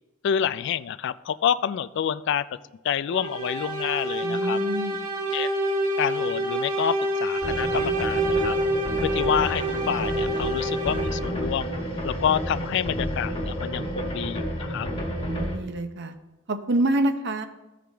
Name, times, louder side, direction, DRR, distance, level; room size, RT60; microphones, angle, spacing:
voice 1, 0.2-2.4 2.8-4.6 5.3-5.5 6.0-6.9 7.2-8.6 9.0-11.7 12.0-14.9, left 8 dB, 60° left, 15 dB, 0.3 m, -28 dB
sound 1, 3.1-11.5, right 1 dB, 40° right, 1.7 m, -27 dB
voice 2, 4.2-5.1 15.1-16.2 16.5-17.5, right 1 dB, 60° right, 8 dB, 0.7 m, -27 dB
sound 2, 7.4-15.6, equal, 30° left, 1.5 m, -31 dB
14.5 x 5.0 x 3.4 m, 1.1 s
head